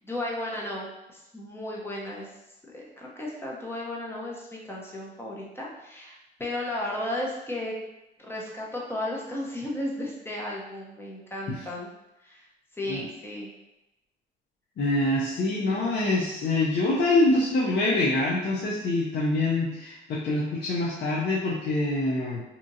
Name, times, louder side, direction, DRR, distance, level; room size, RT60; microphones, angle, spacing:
voice 1, 0.0-2.3 2.7-7.7 8.2-11.9 12.2-12.5 12.7-13.5, left 1 dB, 10° left, -3 dB, 0.8 m, -34 dB
voice 2, 14.8-22.4, left 2 dB, 60° left, -5 dB, 0.6 m, -25 dB
2.9 x 2.4 x 2.6 m, 0.95 s
cardioid pair, 90°, 20 cm